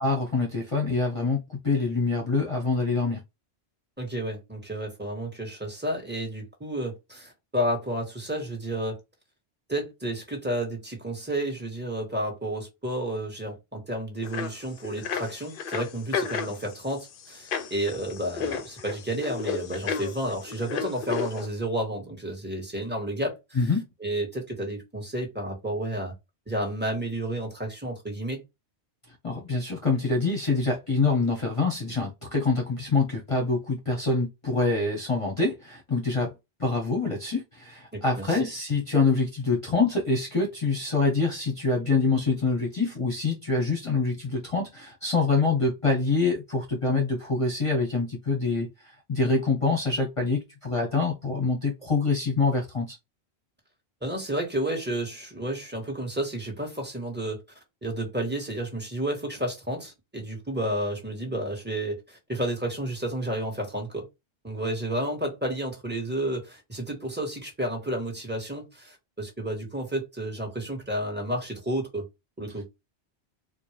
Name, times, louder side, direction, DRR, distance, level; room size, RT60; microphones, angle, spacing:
voice 1, 0.0-3.2 23.5-23.9 29.2-36.3 36.6-48.7 49.1-53.0, left 3 dB, 30° left, 0.9 m, -25 dB
voice 2, 4.0-9.0 9.7-23.7 24.0-26.1 26.5-28.4 37.9-38.5 54.0-57.4 57.8-64.1 64.4-72.1 72.4-72.7, right 1 dB, 10° right, 1.4 m, -31 dB
sound 1, 14.2-14.5 14.8-21.5, left 6 dB, 60° left, 0.7 m, -32 dB
4.3 x 2.2 x 3.2 m
omnidirectional pair, 1.1 m